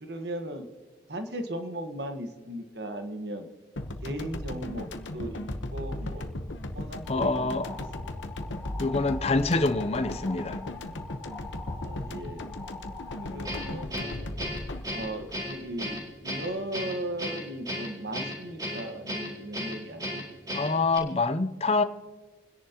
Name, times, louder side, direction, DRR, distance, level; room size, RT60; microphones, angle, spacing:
voice 1, 0.0-0.6 1.1-3.4 4.0-4.9 5.1-5.4 5.7-6.3 6.7-7.9 11.6-12.4 13.2-14.2 14.9-20.6, right 1 dB, 60° right, 6 dB, 1.4 m, -37 dB
sound 1, 3.8-16.2, left 1 dB, 80° left, 1.0 m, -37 dB
sound 2, 7.0-13.8, left 4 dB, 5° left, 2.9 m, -44 dB
voice 2, 7.1-7.7 8.8-10.6 20.5-21.8, left 3 dB, 35° left, 10 dB, 0.6 m, -26 dB
Guitar, 13.4-21.0, equal, 20° right, 3.9 m, -35 dB
30.0 x 10.5 x 2.9 m, 1.4 s
head